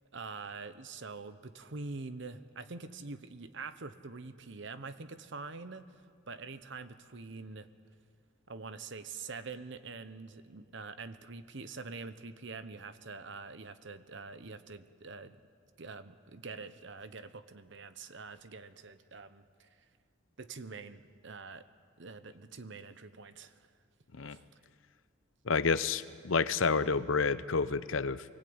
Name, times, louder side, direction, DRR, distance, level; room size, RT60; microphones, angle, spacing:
voice 1, 0.1-7.7 8.5-15.4 15.8-19.7 20.4-21.6 22.0-23.7 24.3-24.4, right 4 dB, 65° right, 12 dB, 1.0 m, -45 dB
voice 2, 25.4-28.2, left 5 dB, 80° left, 15 dB, 0.7 m, -29 dB
24.5 x 18.5 x 8.8 m, 2.2 s
head